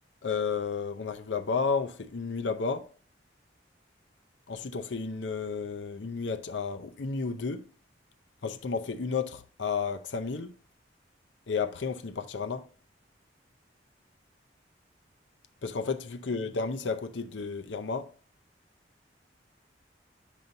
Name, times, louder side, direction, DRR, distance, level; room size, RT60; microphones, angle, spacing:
voice 1, 0.2-2.9 4.5-7.7 8.4-10.5 11.5-12.7 15.6-18.1, left 5 dB, 90° left, 0.6 m, -32 dB
9.2 x 5.4 x 2.7 m
head